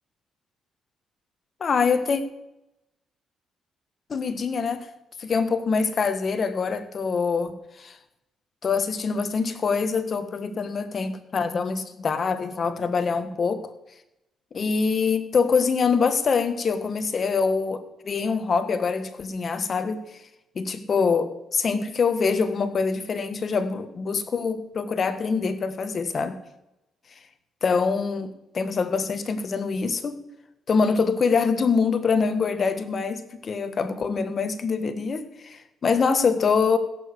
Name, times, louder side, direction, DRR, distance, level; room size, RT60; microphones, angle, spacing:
voice 1, 1.6-2.2 4.1-4.9 5.2-8.0 8.6-13.7 14.5-20.0 20.5-26.4 27.6-30.2 30.7-36.8, left 5 dB, 45° left, 1.4 m, -24 dB
16.0 x 7.3 x 6.8 m
cardioid pair, 90°, 0 cm